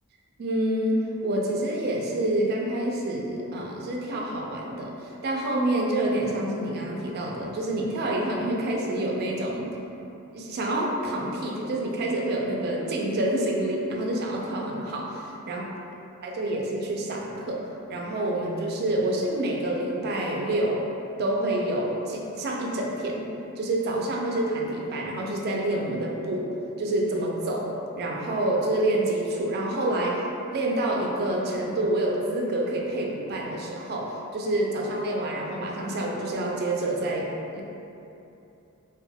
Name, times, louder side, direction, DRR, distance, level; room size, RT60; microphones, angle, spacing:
voice 1, 0.4-9.7 10.3-15.6 16.2-17.6 17.9-20.8 21.2-23.3 23.6-26.5 26.8-27.7 28.0-30.2 30.5-37.6, right 1 dB, 45° right, -1 dB, 0.4 m, -27 dB
2.2 x 2.1 x 3.3 m, 2.8 s
head